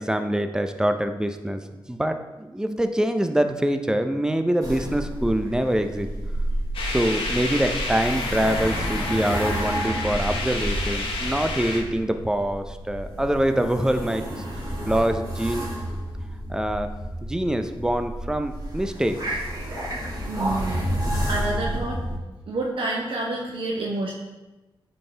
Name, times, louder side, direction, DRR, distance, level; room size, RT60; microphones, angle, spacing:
voice 1, 0.0-1.6 1.9-6.1 6.8-14.2 14.9-16.0 16.5-16.9 17.2-19.2, right 1 dB, 10° right, 7 dB, 0.6 m, -25 dB
sound 1, 4.6-22.2, right 1 dB, 45° right, 2.4 m, -30 dB
sound 2, 6.7-11.8, left 3 dB, 85° left, 1.2 m, -30 dB
voice 2, 20.3-22.0 22.5-24.1, right 2 dB, 75° right, -2 dB, 0.8 m, -29 dB
8.6 x 4.4 x 3.3 m, 1.1 s
cardioid pair, 75°, 9 cm